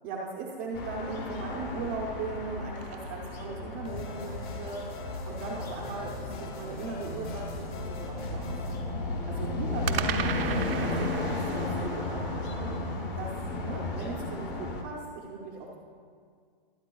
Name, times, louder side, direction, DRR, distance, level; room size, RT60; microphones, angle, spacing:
voice 1, 0.0-4.9 5.3-8.8 9.3-10.4 10.8-12.8 13.2-13.3 13.6-15.7, right 4 dB, 15° right, -5 dB, 0.5 m, -38 dB
sound 1, 0.7-14.8, left 2 dB, 20° left, 0.8 m, -34 dB
sound 2, 2.1-4.0 9.8-14.1, right 8 dB, 75° right, 0.7 m, -38 dB
sound 3, 3.8-8.9, left 2 dB, 55° left, 1.8 m, -42 dB
21.5 x 8.3 x 2.3 m, 2.1 s
hypercardioid pair, 170°, 29 cm